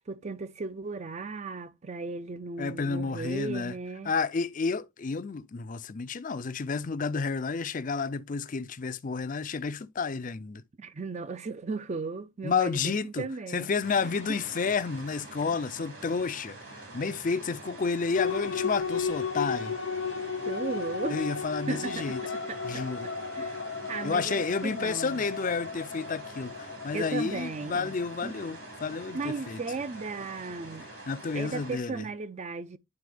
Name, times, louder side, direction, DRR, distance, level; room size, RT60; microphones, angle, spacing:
voice 1, 0.0-4.1 10.8-13.7 14.3-14.4 20.5-21.2 21.7-22.2 22.5-23.6 23.9-25.2 26.9-27.9 28.2-28.3 29.1-30.9 31.3-32.8, right 4 dB, 35° right, 0.4 m, -36 dB
voice 2, 2.6-3.7 4.0-10.6 12.4-13.3 13.5-19.8 21.1-22.2 22.6-23.1 24.0-29.6 31.1-32.0, left 5 dB, 40° left, 0.5 m, -31 dB
sound 1, 13.8-31.7, right 2 dB, 75° right, 4.1 m, -46 dB
sound 2, 18.1-30.1, left 5 dB, 60° left, 0.8 m, -35 dB
11.0 x 4.1 x 3.4 m
head